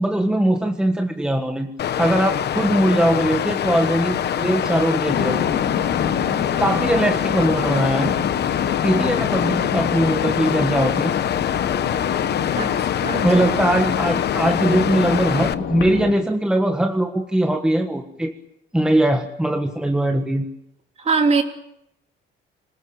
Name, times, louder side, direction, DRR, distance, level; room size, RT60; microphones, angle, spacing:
voice 1, 0.0-1.7 2.0-5.5 6.6-8.2 8.8-11.1 13.2-18.3 18.7-20.5, right 1 dB, 5° right, 3 dB, 1.6 m, -20 dB
Water, 1.8-15.5, left 10 dB, 50° left, 1.1 m, -24 dB
sound 1, 5.1-16.1, left 8 dB, 70° left, 4.0 m, -27 dB
voice 2, 21.0-21.4, right 4 dB, 30° right, 3 dB, 3.4 m, -19 dB
26.5 x 19.0 x 8.9 m, 0.81 s
cardioid pair, 165°, 21 cm